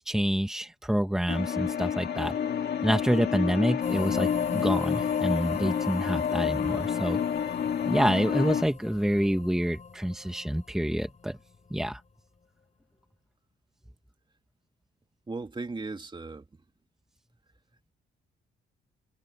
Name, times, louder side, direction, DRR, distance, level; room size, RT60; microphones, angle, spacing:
voice 1, 0.0-2.4 2.8-7.2 7.9-11.4 11.7-12.0, equal, 5° right, 1.4 m, -27 dB
sound 1, 1.3-8.6, left 8 dB, 55° left, 1.8 m, -29 dB
sound 2, 3.8-11.6, left 5 dB, 35° left, 3.2 m, -39 dB
voice 2, 15.3-16.5, right 3 dB, 25° right, 2.6 m, -36 dB
cardioid pair, 90°, 20 cm